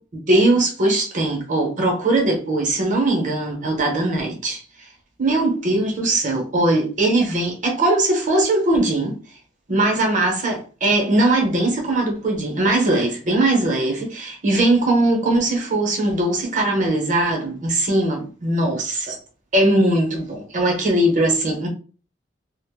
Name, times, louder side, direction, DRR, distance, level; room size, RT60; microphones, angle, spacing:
voice 1, 0.1-4.6 5.2-9.1 9.7-19.1 19.5-21.7, right 2 dB, 45° right, 0.8 m, -20 dB
2.4 x 2.1 x 3.5 m
head